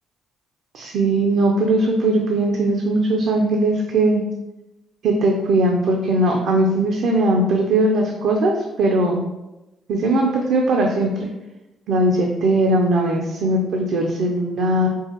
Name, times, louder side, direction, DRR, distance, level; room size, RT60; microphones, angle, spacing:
voice 1, 0.7-4.2 5.0-9.2 9.9-11.3 11.9-14.9, right 2 dB, 75° right, 1 dB, 0.5 m, -19 dB
4.6 x 2.8 x 2.9 m, 0.99 s
cardioid pair, 90°, 0 cm